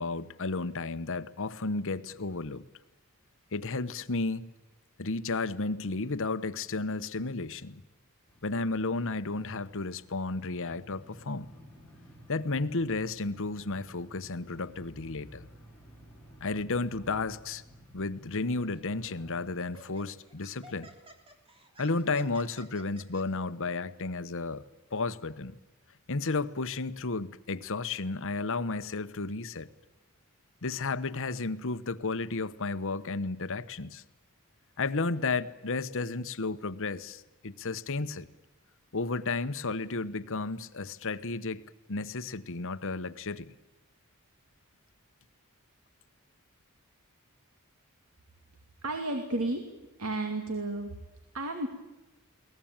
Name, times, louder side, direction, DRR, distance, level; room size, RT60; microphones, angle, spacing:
voice 1, 0.0-2.7 3.5-4.5 5.0-7.8 8.4-11.5 12.3-15.5 16.4-17.6 17.9-20.9 21.8-24.6 24.9-25.6 26.1-29.7 30.6-34.0 34.8-38.3 38.9-41.6 41.9-43.5, left 3 dB, 65° left, 13 dB, 1.1 m, -33 dB
sound 1, 8.3-19.4, equal, 5° left, 6.0 m, -54 dB
Laughter, 18.7-18.9 19.6-23.2, right 1 dB, 25° right, 3.4 m, -53 dB
voice 2, 48.8-49.6 50.0-50.9 51.3-51.7, right 2 dB, 70° right, 5 dB, 2.6 m, -32 dB
22.5 x 19.5 x 8.9 m, 1.1 s
head